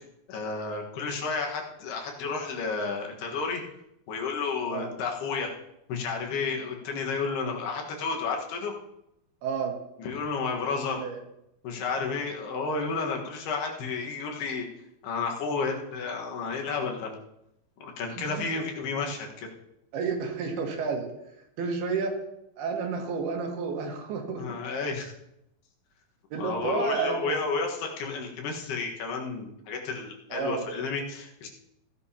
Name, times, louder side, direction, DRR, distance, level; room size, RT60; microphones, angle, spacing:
voice 1, 0.3-3.6 4.1-5.5 5.9-8.7 10.0-11.0 11.6-14.7 15.0-17.1 17.8-19.5 24.4-25.1 26.4-31.5, left 4 dB, 90° left, 1 dB, 3.6 m, -31 dB
voice 2, 9.4-9.8 10.7-11.2 18.2-18.3 19.9-21.1 21.6-22.2 22.6-24.6 26.3-27.2 30.3-30.6, right 5 dB, 85° right, 2 dB, 3.6 m, -31 dB
16.0 x 11.0 x 2.9 m, 0.83 s
omnidirectional pair, 4.4 m